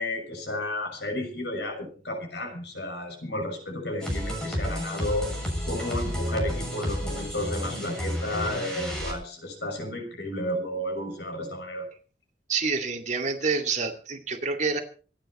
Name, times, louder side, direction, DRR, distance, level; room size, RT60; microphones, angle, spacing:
voice 1, 0.0-5.3 5.6-11.9, left 1 dB, 70° left, 3 dB, 6.2 m, -32 dB
sound 1, 4.0-9.1, equal, 5° left, 7.1 m, -31 dB
voice 2, 12.5-14.8, right 4 dB, 45° right, 4 dB, 2.5 m, -27 dB
26.5 x 10.0 x 4.4 m, 0.40 s
head